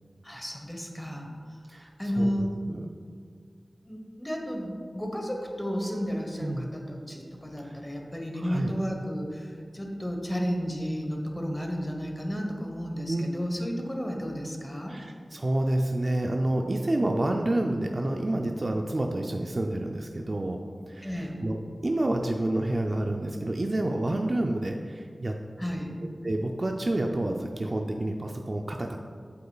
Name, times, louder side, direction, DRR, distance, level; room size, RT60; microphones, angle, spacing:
voice 1, 0.2-1.3 1.7-2.5 3.8-15.0 21.0-21.4 25.6-25.9, equal, 10° left, 1 dB, 1.1 m, -32 dB
voice 2, 2.2-2.8 6.4-6.7 7.6-7.8 8.4-8.7 13.1-13.2 14.9-20.6 20.9-21.6 21.8-25.4 26.2-29.0, right 1 dB, 45° right, 2 dB, 0.4 m, -29 dB
8.4 x 7.8 x 2.3 m, 2.1 s
wide cardioid pair, 70°, 0 cm